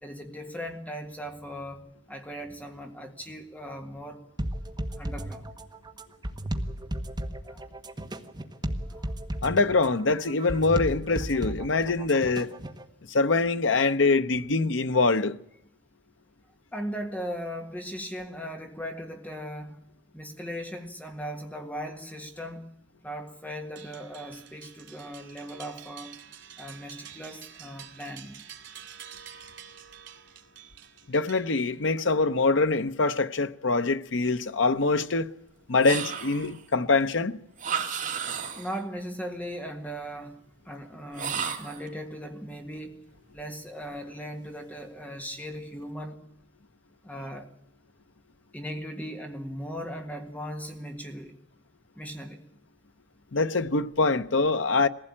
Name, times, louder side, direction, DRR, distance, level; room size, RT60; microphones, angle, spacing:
voice 1, 0.0-4.2 5.0-5.5 7.5-7.6 8.9-9.1 16.7-19.8 20.1-22.7 23.0-26.2 26.6-28.4 38.6-40.4 40.7-43.0 43.3-46.2 47.0-47.5 48.5-51.3 52.0-52.4, equal, 10° left, 1.7 m, -38 dB
sound 1, 4.4-12.8, right 1 dB, 25° right, 1.4 m, -34 dB
voice 2, 9.4-12.5 13.1-15.4 31.1-35.3 35.7-37.4 53.3-54.9, left 3 dB, 85° left, 0.8 m, -24 dB
sound 2, 23.8-31.9, right 9 dB, 70° right, 2.4 m, -48 dB
sound 3, 35.8-36.6 37.6-38.8 41.1-41.9, right 7 dB, 45° right, 2.6 m, -32 dB
21.0 x 16.0 x 8.7 m
head